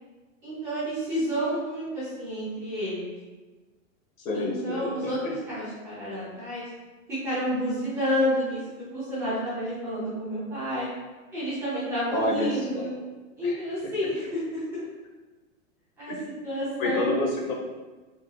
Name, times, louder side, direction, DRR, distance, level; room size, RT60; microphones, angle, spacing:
voice 1, 0.4-3.1 4.3-6.7 7.1-10.9 11.3-12.9 13.4-14.8 16.0-16.2 16.4-17.1, equal, 5° right, -12 dB, 0.4 m, -30 dB
voice 2, 4.2-4.9 12.1-12.9 13.4-13.6 16.1-16.2 16.8-17.5, left 2 dB, 80° left, -1 dB, 1.1 m, -28 dB
3.7 x 2.9 x 2.3 m, 1.3 s
hypercardioid pair, 150°, 40 cm